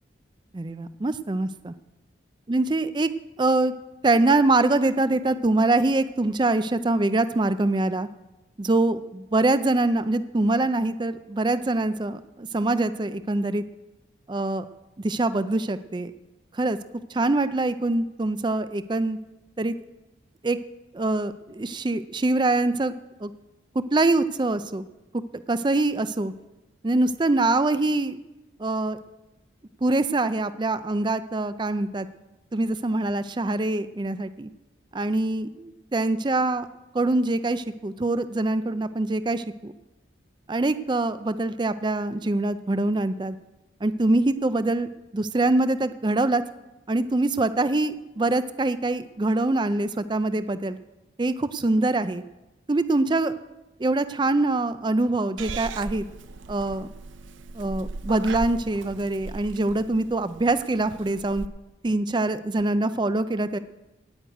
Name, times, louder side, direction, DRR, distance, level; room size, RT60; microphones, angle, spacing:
voice 1, 0.5-1.7 2.5-3.1 3.4-3.7 4.0-8.1 8.6-13.6 14.3-14.6 15.0-16.1 16.5-16.8 17.1-19.2 19.6-19.7 20.4-20.6 20.9-22.9 23.2-23.3 23.9-24.8 25.3-26.3 26.8-28.2 28.6-29.0 29.8-32.1 32.5-34.5 34.9-36.7 36.9-39.7 40.5-43.4 43.8-46.4 46.9-50.8 51.2-52.2 52.7-53.3 53.8-56.0 56.5-56.9 57.5-61.4 61.8-63.6, right 2 dB, 25° right, 12 dB, 0.4 m, -24 dB
Purr / Meow, 55.4-61.5, right 3 dB, 75° right, 0.6 m, -38 dB
16.5 x 6.3 x 9.3 m, 1.0 s
head